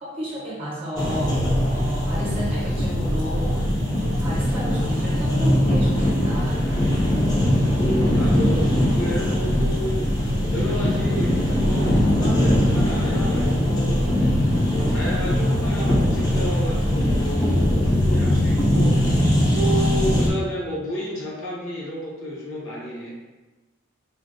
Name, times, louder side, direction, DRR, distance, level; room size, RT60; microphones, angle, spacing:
voice 1, 0.0-6.7, equal, 25° right, -7 dB, 0.7 m, -32 dB
sound 1, 1.0-20.3, left 1 dB, 20° left, 0.5 m, -21 dB
voice 2, 7.8-10.1 10.5-11.3 11.6-14.1 14.7-19.1 19.5-23.1, equal, 65° left, -5 dB, 0.9 m, -31 dB
3.6 x 2.2 x 2.5 m, 1.2 s
head